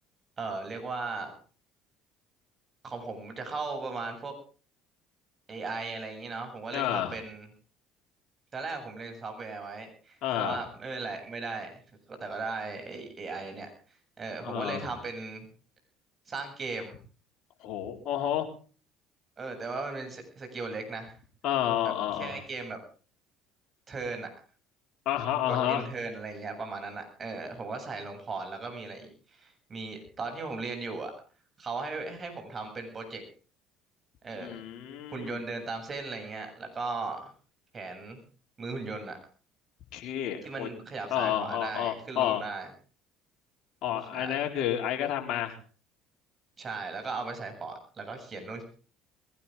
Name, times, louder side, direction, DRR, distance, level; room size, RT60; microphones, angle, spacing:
voice 1, 0.4-1.3 2.8-4.3 5.5-7.5 8.5-11.8 12.1-13.7 14.2-15.5 16.3-17.0 19.4-21.2 21.8-21.9 22.2-22.8 23.9-24.3 25.5-31.1 31.6-33.2 34.2-34.6 35.1-37.3 37.7-38.2 38.6-39.2 40.4-42.7 44.1-44.3 46.6-48.6, right 3 dB, 35° right, 5 dB, 7.8 m, -37 dB
voice 2, 6.7-7.2 10.2-10.6 14.4-14.9 17.6-18.5 21.4-22.4 25.1-25.9 34.4-35.4 39.9-40.7 41.1-42.4 43.8-45.6, left 11 dB, 60° left, 3 dB, 4.0 m, -30 dB
21.5 x 17.0 x 3.7 m, 0.38 s
hypercardioid pair, 65°, 0 cm